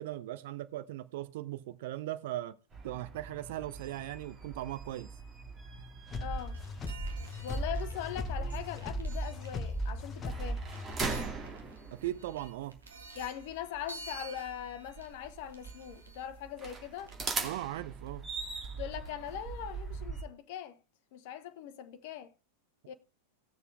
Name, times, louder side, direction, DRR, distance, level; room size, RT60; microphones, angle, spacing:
voice 1, 0.0-2.5 2.8-5.1 11.9-12.8 17.4-18.3, right 14 dB, 55° right, 0.6 m, -38 dB
sound 1, 2.7-20.2, right 4 dB, 25° right, 2.1 m, -42 dB
sound 2, 6.1-11.2, equal, 20° left, 1.0 m, -37 dB
voice 2, 6.2-6.6 7.4-10.6 13.1-17.1 18.8-20.8 21.1-22.3 22.9-23.0, left 10 dB, 50° left, 1.0 m, -41 dB
sound 3, 6.3-17.8, right 3 dB, 70° right, 1.7 m, -52 dB
19.0 x 6.8 x 2.4 m
figure-of-eight pair, 90°, 0 cm